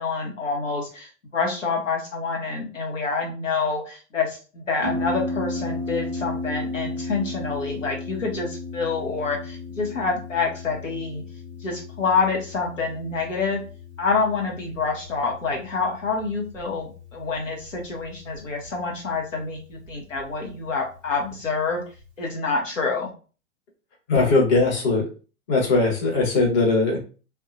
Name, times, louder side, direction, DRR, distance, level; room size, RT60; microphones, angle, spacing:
voice 1, 0.0-11.2 11.6-13.6 14.0-21.8 22.2-23.1, left 4 dB, 75° left, -1 dB, 1.0 m, -27 dB
Harp, 4.8-22.3, left 2 dB, 20° right, 0.3 m, -36 dB
voice 2, 24.1-25.0 25.5-27.0, left 3 dB, 30° left, -1 dB, 1.1 m, -20 dB
2.5 x 2.2 x 2.5 m, 0.35 s
figure-of-eight pair, 100°, 39 cm